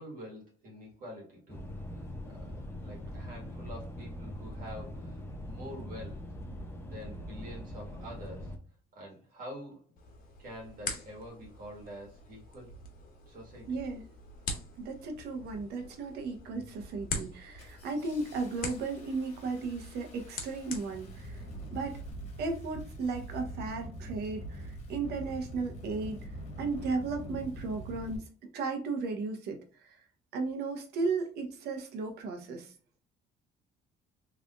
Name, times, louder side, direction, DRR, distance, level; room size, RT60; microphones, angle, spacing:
voice 1, 0.0-1.7 2.2-6.2 6.9-8.6 8.9-9.8 10.4-12.7 13.3-13.8, equal, 55° right, -2 dB, 1.9 m, -46 dB
sound 1, 1.5-8.6, left 1 dB, 15° left, 0.7 m, -42 dB
sound 2, 10.0-22.1, left 3 dB, 55° left, 1.2 m, -44 dB
Engine starting, 11.8-11.9 12.6-13.0 13.7-14.0 14.3-14.9 15.3-15.9 16.2-16.5 16.8-28.2, right 1 dB, 40° left, 1.6 m, -45 dB
voice 2, 13.7-14.1 14.8-21.4 21.7-22.0 22.4-26.3 26.6-28.2 28.5-29.6 29.8-30.0 30.3-32.7, right 4 dB, 75° right, 4 dB, 1.1 m, -35 dB
3.5 x 3.4 x 2.5 m, 0.37 s
cardioid pair, 110°, 17 cm